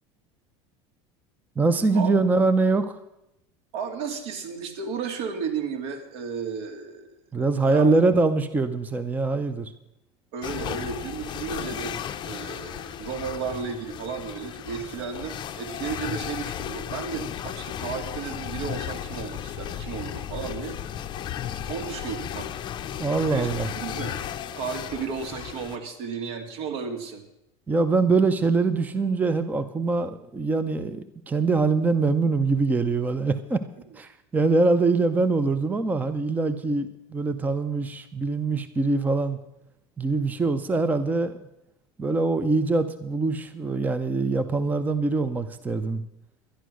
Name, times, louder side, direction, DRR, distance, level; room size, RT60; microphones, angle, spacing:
voice 1, 1.6-3.0 7.3-9.7 23.0-23.7 27.7-33.6 33.9-39.4 40.0-41.4 42.0-46.0, right 3 dB, 10° right, 11 dB, 0.6 m, -23 dB
voice 2, 3.7-7.1 7.7-7.9 10.3-12.0 12.2-20.8 21.7-22.5 22.9-24.2 24.5-27.2, right 6 dB, 70° right, 5 dB, 2.3 m, -33 dB
sound 1, 10.4-25.8, left 10 dB, 35° left, 0.7 m, -35 dB
11.5 x 11.0 x 6.3 m, 0.85 s
supercardioid pair, 135°, 14 cm